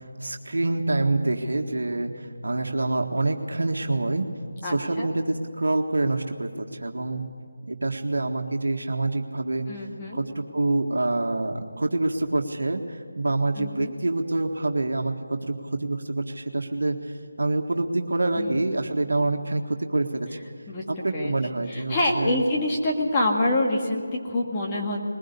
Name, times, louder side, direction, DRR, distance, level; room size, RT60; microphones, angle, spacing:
voice 1, 0.2-4.3 4.6-7.2 7.7-9.6 10.1-20.4 20.9-22.4, right 2 dB, 75° right, 4 dB, 1.7 m, -26 dB
voice 2, 4.6-5.1 9.7-10.2 13.6-13.9 18.4-18.9 20.7-20.8 21.1-21.3 21.7-25.0, left 1 dB, 20° left, -2 dB, 1.9 m, -26 dB
21.5 x 17.0 x 8.4 m, 2.3 s
figure-of-eight pair, 170°, 0 cm